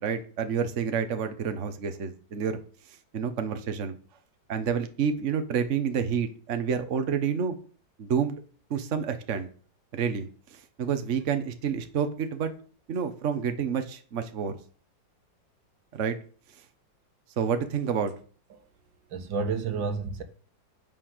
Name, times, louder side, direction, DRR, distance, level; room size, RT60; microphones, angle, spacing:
voice 1, 0.0-2.6 3.1-4.0 4.5-7.5 8.0-8.4 8.7-9.5 9.9-12.5 12.9-14.6 15.9-16.2 17.4-18.1, right 7 dB, 45° right, 1.4 m, -29 dB
voice 2, 19.1-20.2, right 4 dB, 80° right, 2.1 m, -30 dB
9.7 x 9.0 x 6.6 m
omnidirectional pair, 2.0 m